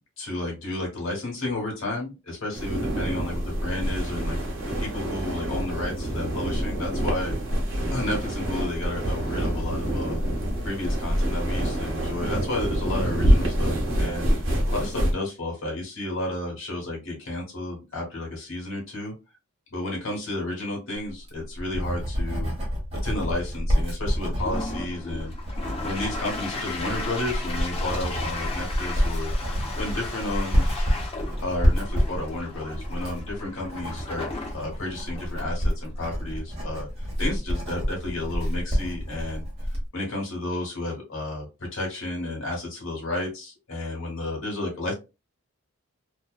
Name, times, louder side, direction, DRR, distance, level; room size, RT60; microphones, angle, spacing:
voice 1, 0.2-4.4 4.8-7.4 7.9-10.2 10.6-19.1 19.7-22.5 23.0-25.3 25.8-29.3 29.7-30.7 31.4-39.4 39.9-44.9, left 2 dB, 60° left, -2 dB, 1.2 m, -32 dB
sound 1, 2.5-15.1, equal, 55° right, 0.9 m, -26 dB
Writing, 21.1-39.9, equal, 25° right, 1.0 m, -28 dB
Toilet flush, 24.3-37.4, left 3 dB, 25° left, 0.4 m, -37 dB
2.6 x 2.1 x 2.3 m, 0.28 s
head